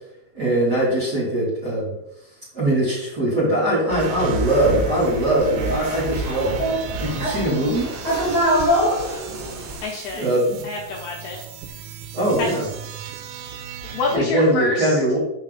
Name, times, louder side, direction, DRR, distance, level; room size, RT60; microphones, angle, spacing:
voice 1, 0.3-1.9 2.5-6.6 7.0-7.9 10.1-10.7 12.1-12.7 14.1-15.2, right 1 dB, 25° right, -7 dB, 2.7 m, -21 dB
sound 1, 3.9-14.2, right 4 dB, 90° right, 3.0 m, -34 dB
sound 2, 4.0-9.8, equal, 50° right, 0.5 m, -25 dB
voice 2, 9.8-10.3 10.6-11.4 12.4-12.5 13.9-14.9, left 3 dB, 75° left, -2 dB, 2.4 m, -26 dB
7.3 x 5.7 x 4.0 m, 0.80 s
omnidirectional pair, 5.3 m